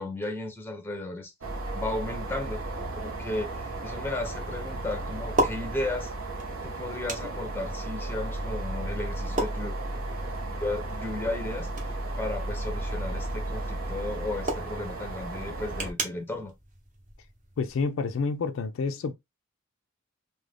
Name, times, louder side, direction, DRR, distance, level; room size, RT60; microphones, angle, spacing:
voice 1, 0.0-1.3 1.7-2.6 2.9-6.1 6.6-9.8 10.6-16.5, left 2 dB, 10° left, 0.5 m, -34 dB
sound 1, 1.4-15.9, right 2 dB, 70° right, 0.7 m, -34 dB
sound 2, 2.6-17.8, right 1 dB, 40° right, 0.8 m, -38 dB
voice 2, 17.6-19.1, left 4 dB, 65° left, 0.3 m, -29 dB
2.4 x 2.1 x 3.2 m
head